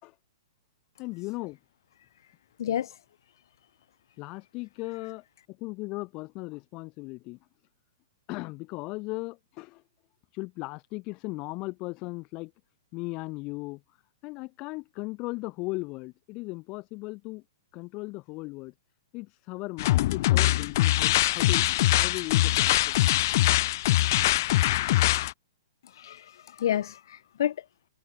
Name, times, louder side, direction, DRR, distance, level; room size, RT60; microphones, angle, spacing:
voice 1, 1.0-1.6 4.2-7.4 8.3-9.8 10.3-12.5 12.9-13.8 14.2-17.4 17.7-18.7 19.1-23.0, left 24 dB, 30° left, 4.7 m, -37 dB
voice 2, 2.6-3.0 25.8-27.6, left 10 dB, 60° left, 1.1 m, -30 dB
sound 1, 19.8-25.3, left 16 dB, 45° left, 0.5 m, -23 dB
hypercardioid pair, 160°, 2 cm